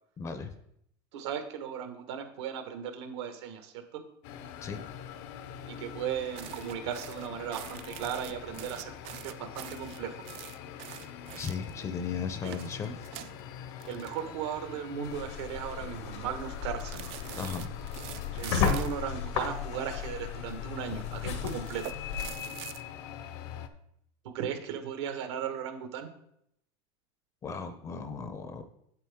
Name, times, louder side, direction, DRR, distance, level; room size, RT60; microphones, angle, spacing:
voice 1, 0.2-0.5 4.6-4.8 11.4-13.1 17.4-17.7 27.4-28.7, left 6 dB, 20° left, 10 dB, 0.6 m, -36 dB
voice 2, 1.1-4.0 5.7-8.9 9.2-10.3 12.4-12.6 13.9-17.0 18.3-21.8 24.2-26.1, right 8 dB, 85° right, 7 dB, 1.5 m, -37 dB
sound 1, 4.2-23.7, left 9 dB, 55° left, 0.7 m, -44 dB
sound 2, 6.3-11.9 12.3-14.6 14.9-15.1 15.5-16.0 16.8-19.0 19.7-20.6 21.3-22.8, right 14 dB, 45° right, 0.4 m, -45 dB
sound 3, 15.0-22.4, left 6 dB, 85° left, 1.7 m, -35 dB
8.2 x 7.7 x 3.6 m, 0.73 s
supercardioid pair, 165°, 14 cm